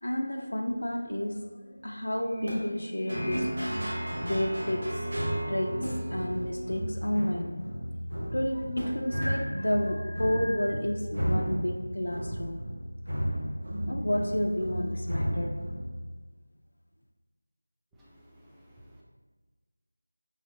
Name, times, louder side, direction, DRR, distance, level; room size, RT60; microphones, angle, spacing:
voice 1, 0.0-3.5 4.2-5.1 5.5-7.6 8.2-12.7 13.9-15.5, left 1 dB, 85° left, 2 dB, 0.4 m, -31 dB
sound 1, 2.1-3.4 5.5-6.4 6.8-6.9 8.3-10.6, equal, 50° right, 1.5 m, -37 dB
sound 2, 3.1-16.2, equal, 70° right, 1.1 m, -33 dB
voice 2, 18.0-19.0, equal, 5° right, -8 dB, 0.3 m, -56 dB
5.5 x 3.1 x 2.6 m, 1.3 s
figure-of-eight pair, 175°, 0 cm